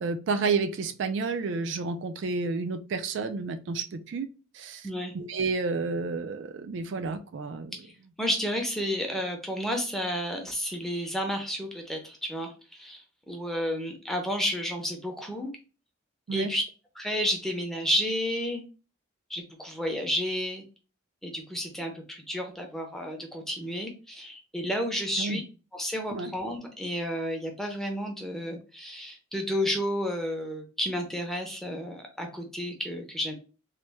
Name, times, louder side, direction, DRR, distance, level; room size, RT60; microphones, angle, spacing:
voice 1, 0.0-4.3 4.5-4.9 5.1-7.8 16.3-16.5 25.2-25.4 26.1-26.3, right 4 dB, 65° right, 0.3 m, -30 dB
voice 2, 8.2-13.0 13.3-15.5 16.3-16.6 17.0-18.6 19.3-20.6 21.2-25.4 25.7-33.3, equal, ahead, 0.6 m, -31 dB
3.0 x 2.1 x 3.4 m
head